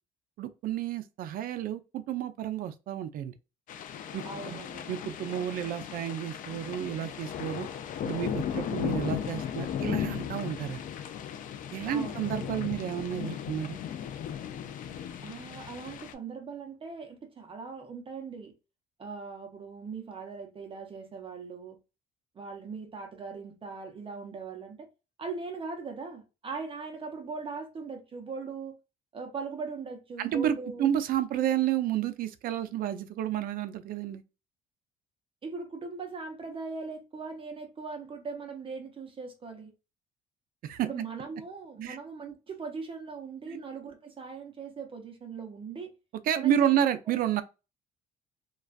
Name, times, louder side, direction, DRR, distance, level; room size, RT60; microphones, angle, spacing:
voice 1, 0.4-3.3 4.1-4.6 4.9-7.7 8.0-10.8 11.7-13.8 30.2-30.5 30.8-34.2 40.6-40.9 41.8-42.0 43.5-43.6 46.3-47.4, right 10 dB, 60° right, 0.4 m, -30 dB
sound 1, 3.7-16.1, left 9 dB, 50° left, 0.4 m, -36 dB
voice 2, 4.2-4.9 11.9-12.2 15.2-18.5 19.0-21.8 22.3-24.9 25.2-28.8 29.1-30.9 35.4-39.7 40.9-45.9 46.4-46.8, right 4 dB, 30° right, 0.7 m, -40 dB
2.3 x 2.3 x 2.4 m
cardioid pair, 110°, 17 cm